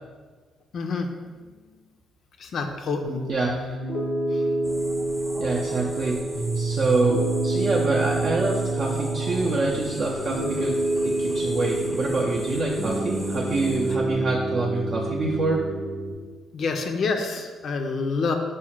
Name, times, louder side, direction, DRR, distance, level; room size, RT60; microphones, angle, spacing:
voice 1, 0.7-1.1 1.7-1.8 2.4-3.2 4.3-4.8 16.5-18.3, left 4 dB, 60° left, 4 dB, 0.4 m, -28 dB
Piano, 3.0-16.1, right 2 dB, 90° left, 0.7 m, -28 dB
voice 2, 3.3-3.8 5.4-15.7, right 3 dB, 55° right, -3 dB, 0.4 m, -26 dB
sound 1, 4.6-14.0, equal, 5° right, 0.6 m, -38 dB
4.7 x 2.1 x 4.2 m, 1.4 s
cardioid pair, 90°, 0 cm